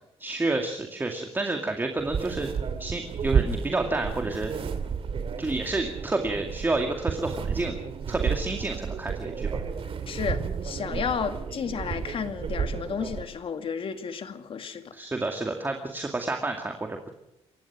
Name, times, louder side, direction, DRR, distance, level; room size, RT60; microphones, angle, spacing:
voice 1, 0.2-2.5 2.8-4.5 5.4-7.7 8.1-9.6 10.9-11.0 14.9-17.1, right 2 dB, 20° right, 4 dB, 2.3 m, -29 dB
sound 1, 2.0-13.2, right 6 dB, 55° right, 2.5 m, -31 dB
voice 2, 10.1-15.0, left 6 dB, 55° left, 8 dB, 2.1 m, -32 dB
27.5 x 16.0 x 6.0 m, 0.90 s
cardioid pair, 115°, 11 cm